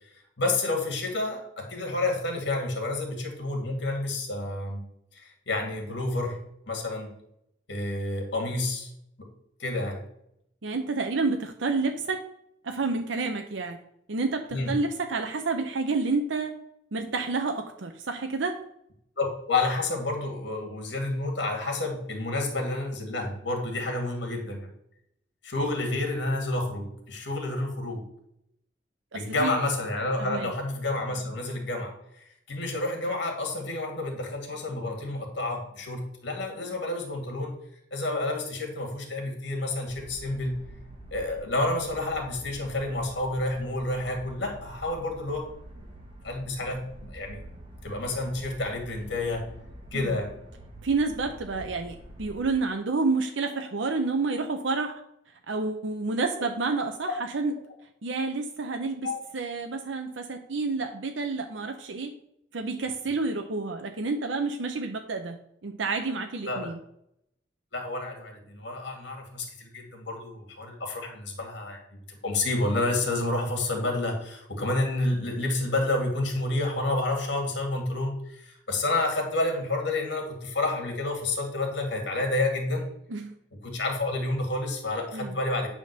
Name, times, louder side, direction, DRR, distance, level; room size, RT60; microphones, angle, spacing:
voice 1, 0.4-4.8 5.1-6.4 6.7-7.1 7.7-8.9 9.2-9.3 9.6-10.1 14.5-14.8 19.2-24.7 25.4-28.0 29.1-31.9 32.5-37.5 37.9-40.7 41.1-45.5 46.2-47.4 47.8-49.5 49.9-50.3 59.0-59.2 66.4-66.7 67.7-82.9 83.5-85.7, left 2 dB, 65° left, 2 dB, 2.1 m, -29 dB
voice 2, 10.6-12.2 12.6-13.8 14.1-16.5 16.9-18.6 29.1-29.5 30.2-30.5 49.9-50.1 50.8-54.9 55.5-57.1 57.3-57.5 58.0-62.1 62.5-66.8 83.1-83.3 85.1-85.3, right 3 dB, 85° right, 4 dB, 0.7 m, -29 dB
sound 1, 39.9-52.5, right 1 dB, 30° right, 1.4 m, -46 dB
9.3 x 3.7 x 6.7 m, 0.77 s
head